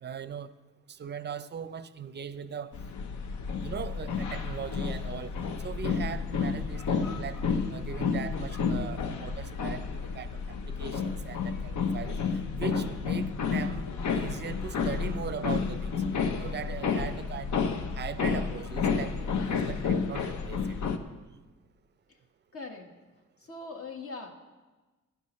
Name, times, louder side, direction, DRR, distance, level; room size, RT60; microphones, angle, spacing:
voice 1, 0.0-0.5 0.9-2.7 3.6-5.3 5.6-7.4 7.7-10.3 10.6-12.2 12.5-13.9 14.1-15.9 16.4-17.6 18.0-20.8, right 7 dB, 35° right, 14 dB, 0.6 m, -39 dB
sound 1, 2.7-21.0, left 5 dB, 70° left, 0.9 m, -31 dB
voice 2, 22.5-22.9 23.4-24.3, left 3 dB, 50° left, 3 dB, 1.5 m, -40 dB
15.0 x 10.5 x 3.1 m, 1.2 s
cardioid pair, 90°, 30 cm